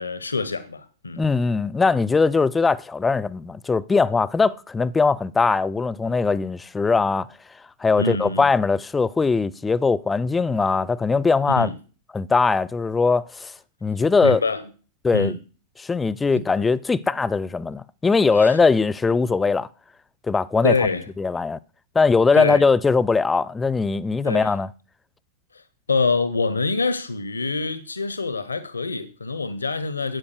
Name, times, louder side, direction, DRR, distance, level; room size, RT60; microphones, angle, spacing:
voice 1, 0.0-1.2 8.0-8.5 11.5-11.7 14.2-14.6 15.1-15.4 16.3-16.4 18.3-18.6 20.6-21.1 22.4-22.6 24.2-24.5 25.5-25.6 25.9-30.2, left 4 dB, 75° left, 0.8 m, -25 dB
voice 2, 1.2-11.7 12.1-13.5 13.8-14.4 15.0-15.3 15.8-19.7 20.3-20.9 21.2-21.6 21.9-24.7, left 4 dB, 15° left, 0.6 m, -21 dB
12.5 x 8.6 x 6.5 m
figure-of-eight pair, 90°, 0 cm